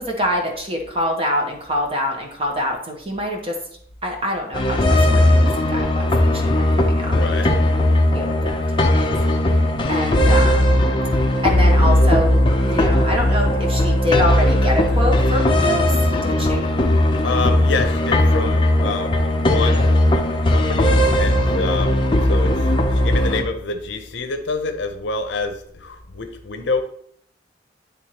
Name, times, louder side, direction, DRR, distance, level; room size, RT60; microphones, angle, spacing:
voice 1, 0.0-3.6 4.0-5.4 5.7-7.2 8.1-9.0 9.9-10.8 11.4-15.9 16.2-16.7, equal, 30° right, 1 dB, 1.2 m, -25 dB
sound 1, 4.5-23.4, left 1 dB, 25° left, 0.6 m, -17 dB
voice 2, 7.0-7.5 16.1-16.5 17.2-20.0 20.5-22.0 22.3-22.7 22.9-26.8, left 4 dB, 70° left, 6 dB, 0.7 m, -27 dB
10.0 x 3.5 x 2.9 m, 0.64 s
head